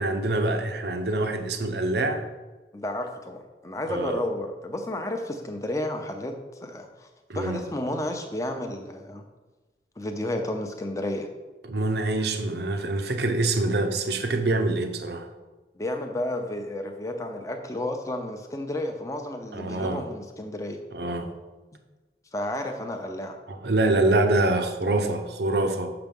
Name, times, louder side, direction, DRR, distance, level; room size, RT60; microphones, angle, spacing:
voice 1, 0.0-2.3 3.9-4.2 7.3-7.6 11.6-15.3 19.5-20.1 20.9-21.3 23.5-25.9, right 2 dB, 70° right, 7 dB, 0.8 m, -25 dB
voice 2, 2.7-6.3 6.6-7.1 7.3-9.2 10.0-11.3 15.8-20.8 22.3-23.4, left 1 dB, 20° left, 5 dB, 0.7 m, -32 dB
6.6 x 5.9 x 5.3 m, 1.2 s
head